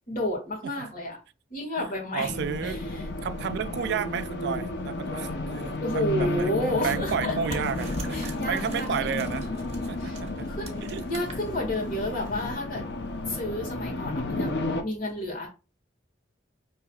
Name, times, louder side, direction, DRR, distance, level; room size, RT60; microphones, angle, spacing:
voice 1, 0.1-1.2 1.5-3.0 5.7-7.4 8.1-9.1 10.0-10.2 10.5-12.8 13.3-14.5 14.8-15.5, left 1 dB, 50° left, 1.7 m, -31 dB
voice 2, 1.8-2.8 3.2-9.5 9.9-10.5 10.8-11.0, right 7 dB, 65° right, 0.3 m, -32 dB
Race car auto racing, 2.2-14.8, left 2 dB, 65° left, 0.6 m, -32 dB
sound 1, 5.2-12.5, right 1 dB, 15° right, 1.4 m, -47 dB
sound 2, 6.8-12.0, right 2 dB, 35° right, 1.0 m, -42 dB
5.5 x 3.0 x 2.3 m
head